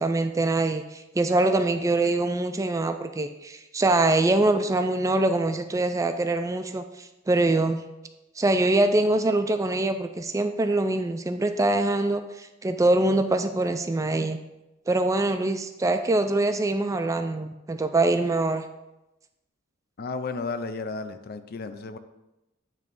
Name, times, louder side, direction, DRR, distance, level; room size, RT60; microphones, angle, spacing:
voice 1, 0.0-7.8 8.4-14.4 14.9-18.6, right 2 dB, 15° right, 8 dB, 0.3 m, -24 dB
voice 2, 20.0-22.0, left 4 dB, 50° left, 10 dB, 0.5 m, -33 dB
9.2 x 3.1 x 5.2 m, 0.96 s
head